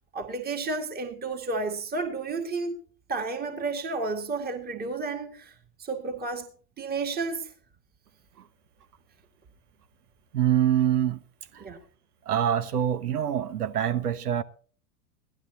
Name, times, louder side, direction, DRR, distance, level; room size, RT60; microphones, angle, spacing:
voice 1, 0.1-2.8 3.1-6.5 6.8-7.5 11.6-11.8, right 3 dB, 20° right, 2.1 m, -32 dB
voice 2, 10.3-11.2 11.5-11.6 12.3-14.4, right 10 dB, 85° right, 1.2 m, -25 dB
16.5 x 12.0 x 4.2 m
hypercardioid pair, 95°, 45 cm